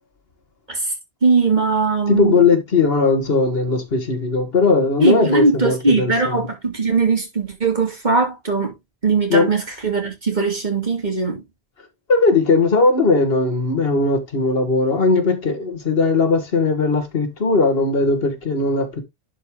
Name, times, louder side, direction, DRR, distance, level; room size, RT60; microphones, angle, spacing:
voice 1, 1.2-2.4 5.0-8.7 9.0-11.4, right 4 dB, 45° right, 2.9 m, -20 dB
voice 2, 2.1-6.4 9.3-9.5 12.1-19.0, left 3 dB, 70° left, 1.8 m, -18 dB
11.0 x 4.7 x 3.6 m
omnidirectional pair, 1.0 m